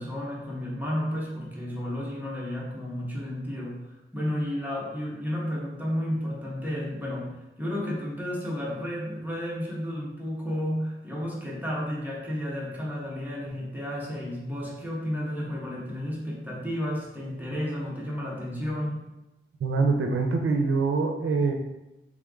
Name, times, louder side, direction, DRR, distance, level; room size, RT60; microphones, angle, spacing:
voice 1, 0.0-19.0, equal, 10° right, -5 dB, 1.5 m, -32 dB
voice 2, 19.6-21.5, right 4 dB, 85° right, 4 dB, 0.6 m, -24 dB
3.5 x 3.5 x 3.7 m, 0.95 s
wide cardioid pair, 70°, 21 cm